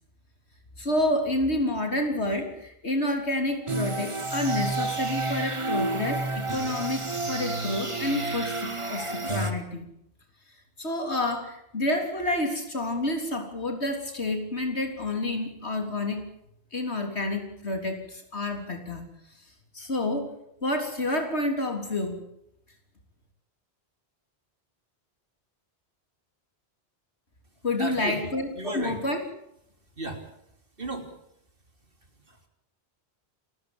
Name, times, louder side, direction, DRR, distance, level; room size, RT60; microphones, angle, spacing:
voice 1, 0.8-9.9 10.8-16.3 16.7-19.1 19.7-20.3 20.6-22.2 27.6-29.2, left 1 dB, 85° left, 5 dB, 4.0 m, -29 dB
sound 1, 3.7-9.5, right 2 dB, 30° right, 1.9 m, -30 dB
voice 2, 27.8-29.0 30.0-30.2 30.8-31.1 32.3-32.4, right 1 dB, 55° right, 4 dB, 3.8 m, -34 dB
28.5 x 14.0 x 8.9 m, 0.76 s
omnidirectional pair, 1.1 m